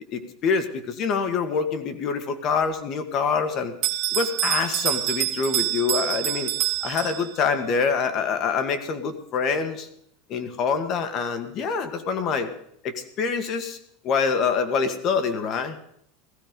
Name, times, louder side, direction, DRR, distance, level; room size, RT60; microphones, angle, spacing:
voice 1, 0.1-3.7 4.1-6.5 6.8-9.9 10.3-12.5 12.8-13.8 14.0-15.8, left 5 dB, 35° left, 8 dB, 1.8 m, -25 dB
Bell, 3.8-7.6, right 15 dB, 40° right, 1.6 m, -26 dB
16.5 x 14.5 x 5.3 m, 0.69 s
supercardioid pair, 160°, 0 cm